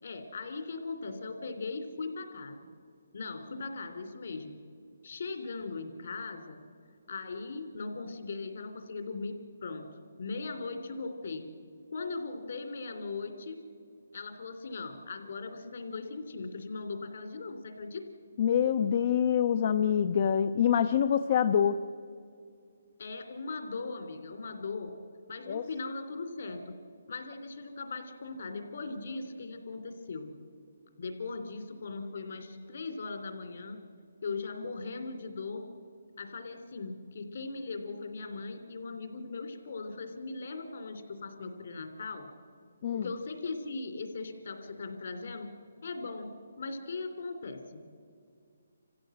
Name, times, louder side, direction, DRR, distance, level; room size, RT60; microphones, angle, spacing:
voice 1, 0.0-2.7 3.1-4.6 5.0-6.6 7.1-9.4 9.6-9.9 10.2-11.5 11.9-13.6 14.1-18.0 23.0-24.9 25.3-26.7 27.1-30.3 31.0-33.8 34.2-35.6 36.2-42.3 42.9-45.5 45.8-46.3 46.6-47.8, left 3 dB, 60° left, 6 dB, 3.0 m, -39 dB
voice 2, 18.4-21.8 25.5-25.6 42.8-43.1, left 8 dB, 40° left, 11 dB, 0.6 m, -25 dB
27.5 x 16.0 x 7.8 m, 2.3 s
hypercardioid pair, 165°, 0 cm